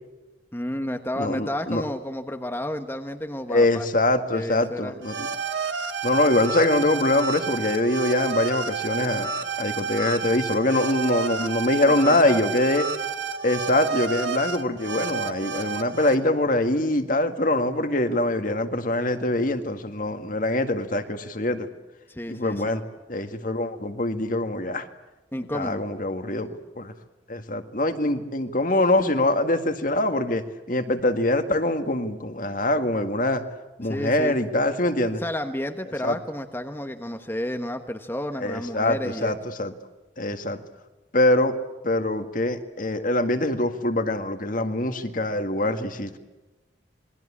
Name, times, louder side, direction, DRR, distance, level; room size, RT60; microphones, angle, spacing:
voice 1, 0.5-3.9 4.3-5.0 11.8-12.5 22.1-22.8 25.3-25.8 33.8-34.3 35.2-39.3, left 1 dB, 10° left, 6 dB, 1.2 m, -31 dB
voice 2, 1.2-1.8 3.5-5.3 6.0-9.3 9.6-12.8 13.4-21.7 22.3-22.8 23.1-24.9 25.5-26.5 26.8-26.9 27.3-33.4 33.8-35.2 36.0-36.2 38.4-39.7 40.2-40.6 41.1-41.5 41.8-46.2, left 1 dB, 45° left, 7 dB, 1.9 m, -24 dB
sound 1, 5.0-16.1, right 5 dB, 75° right, 2.1 m, -30 dB
28.0 x 22.0 x 8.6 m, 1.1 s
head